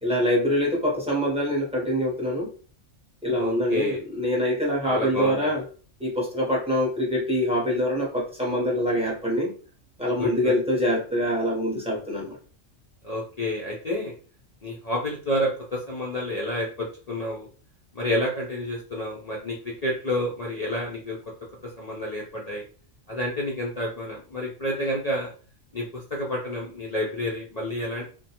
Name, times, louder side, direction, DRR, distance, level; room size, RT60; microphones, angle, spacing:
voice 1, 0.0-2.5 3.2-5.6 6.0-9.5 10.0-12.4, equal, 5° right, -4 dB, 0.6 m, -25 dB
voice 2, 3.4-4.0 4.8-5.5 10.2-10.5 13.0-14.1 14.6-17.5 18.0-21.2 21.8-22.6 23.1-25.3 25.7-28.0, equal, 55° left, -3 dB, 0.4 m, -29 dB
2.4 x 2.2 x 2.8 m, 0.40 s
omnidirectional pair, 1.3 m